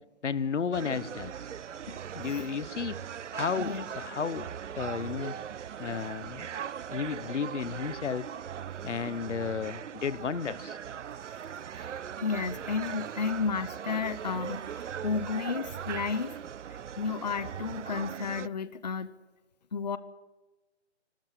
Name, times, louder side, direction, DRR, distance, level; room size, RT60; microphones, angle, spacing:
voice 1, 0.2-1.3 2.1-3.1 3.3-4.5 4.7-5.3 5.8-6.5 6.9-8.2 8.8-10.8, left 6 dB, 90° left, 17 dB, 1.2 m, -33 dB
sound 1, 0.7-18.5, right 8 dB, 85° right, 0.7 m, -39 dB
Bowed string instrument, 1.4-8.6, right 1 dB, 5° right, 5.4 m, -66 dB
Scissors, 11.0-12.1 12.5-13.5 14.1-14.9 15.3-16.4 16.8-16.9, right 3 dB, 25° right, 6.8 m, -61 dB
voice 2, 12.2-16.3 17.0-19.1 19.7-20.0, left 5 dB, 35° left, 14 dB, 0.8 m, -32 dB
29.5 x 13.5 x 8.3 m, 1.2 s
hypercardioid pair, 175°, 35 cm